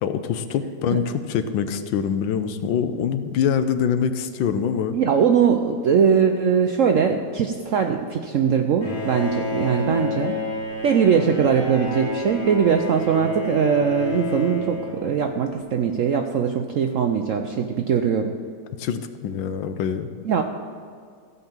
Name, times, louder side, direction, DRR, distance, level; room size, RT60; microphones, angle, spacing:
voice 1, 0.0-5.0 18.8-20.1, left 7 dB, 85° left, 10 dB, 1.5 m, -24 dB
voice 2, 4.9-10.4 10.8-18.3 20.2-20.4, right 7 dB, 75° right, 5 dB, 0.7 m, -21 dB
Bowed string instrument, 8.8-15.6, left 2 dB, 55° left, 3.5 m, -30 dB
15.0 x 5.6 x 7.1 m, 2.1 s
omnidirectional pair, 2.0 m